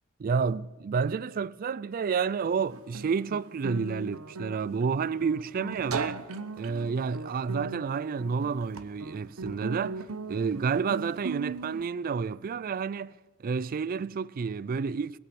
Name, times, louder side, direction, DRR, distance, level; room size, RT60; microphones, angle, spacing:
voice 1, 0.2-6.2 6.6-13.1 13.4-15.2, right 5 dB, 40° right, 0.3 m, -30 dB
Guitar, 2.4-11.9, right 3 dB, 80° right, 0.9 m, -38 dB
20.0 x 8.6 x 7.0 m
head